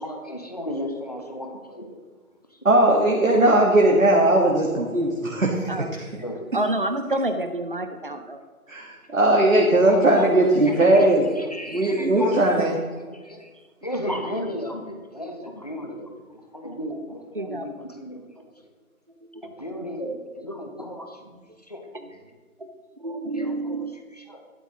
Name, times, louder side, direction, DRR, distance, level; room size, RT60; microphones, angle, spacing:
voice 1, 0.0-2.0 6.2-6.5 9.8-10.3 10.7-12.5 13.0-13.5 13.8-18.2 19.4-21.4 21.7-22.3 23.3-24.4, left 1 dB, 25° left, 3 dB, 1.1 m, -35 dB
voice 2, 2.7-6.0 8.7-11.4 11.7-12.8, right 1 dB, 60° right, -1 dB, 1.9 m, -19 dB
voice 3, 6.5-8.4 17.3-17.7 19.3-19.5 20.0-20.2 23.0-23.9, right 2 dB, 35° right, 7 dB, 0.7 m, -28 dB
13.0 x 12.5 x 3.1 m, 1.4 s
figure-of-eight pair, 170°, 44 cm